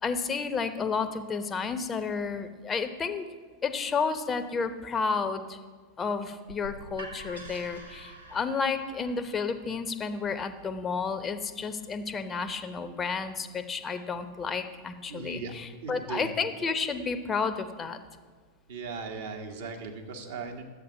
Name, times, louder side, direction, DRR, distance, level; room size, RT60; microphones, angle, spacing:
voice 1, 0.0-3.3 3.6-5.6 6.0-18.0, left 5 dB, 20° left, 9 dB, 0.8 m, -31 dB
sound 1, 6.5-12.3, right 2 dB, 85° right, 1.5 m, -48 dB
voice 2, 15.1-15.5 15.8-16.3 18.7-20.6, right 4 dB, 60° right, 2 dB, 1.6 m, -38 dB
11.0 x 8.1 x 5.4 m, 1.5 s
figure-of-eight pair, 90°, 0 cm